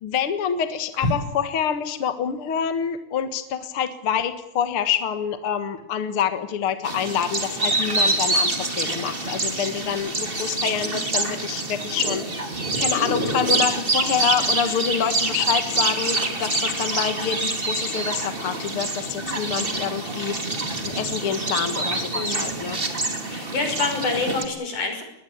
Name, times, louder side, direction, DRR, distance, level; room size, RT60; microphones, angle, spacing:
voice 1, 0.0-12.3 12.8-20.4 20.8-22.8, left 8 dB, 50° left, 10 dB, 2.2 m, -26 dB
sound 1, 6.8-24.5, right 2 dB, 20° right, 2.7 m, -26 dB
voice 2, 22.1-22.5 23.3-25.0, left 3 dB, 75° left, 5 dB, 7.2 m, -26 dB
21.0 x 21.0 x 8.9 m, 0.86 s
omnidirectional pair, 3.6 m